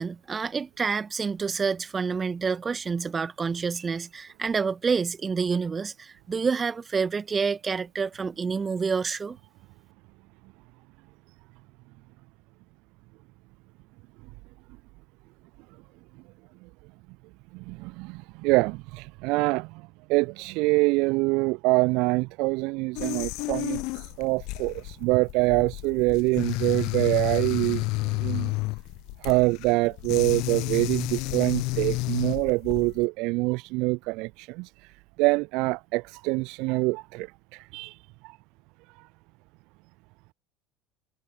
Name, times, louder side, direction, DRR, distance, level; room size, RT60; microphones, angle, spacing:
voice 1, 0.0-9.4, right 5 dB, 25° right, 1.7 m, -28 dB
voice 2, 17.5-28.5 29.2-34.9 35.2-38.0 38.2-38.4 39.0-39.1, right 25 dB, 55° right, 0.4 m, -25 dB
sound 1, 23.0-33.0, left 23 dB, 55° left, 0.4 m, -31 dB
figure-of-eight pair, 65°, 0 cm